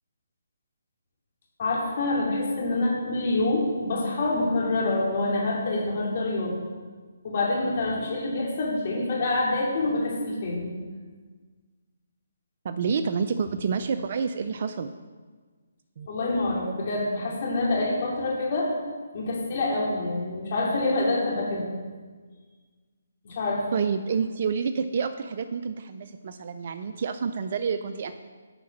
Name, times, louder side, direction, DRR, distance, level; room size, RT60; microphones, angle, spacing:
voice 1, 1.6-6.5 7.2-10.7 16.1-18.7 19.1-21.7 23.2-23.7, left 2 dB, 50° left, -3 dB, 2.8 m, -26 dB
voice 2, 12.6-14.9 16.0-16.1 23.7-28.3, right 5 dB, 50° right, 8 dB, 0.5 m, -28 dB
9.1 x 4.8 x 6.4 m, 1.4 s
hypercardioid pair, 155°, 0 cm